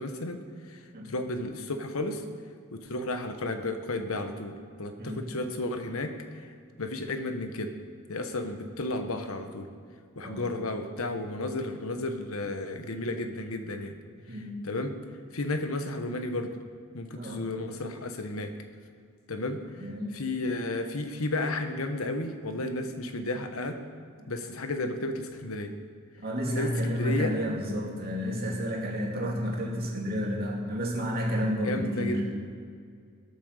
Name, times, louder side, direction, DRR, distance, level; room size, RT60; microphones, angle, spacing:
voice 1, 0.0-2.2 2.7-6.5 6.8-7.7 8.1-9.7 10.1-14.0 14.6-15.0 15.3-16.5 16.9-18.5 19.3-23.8 24.3-25.7 26.5-27.4 31.6-32.3, left 2 dB, 75° left, 7 dB, 1.1 m, -33 dB
voice 2, 14.3-14.6 17.1-17.4 19.8-20.1 26.2-32.2, equal, 45° right, -1 dB, 2.6 m, -31 dB
16.0 x 8.4 x 6.6 m, 2.2 s
head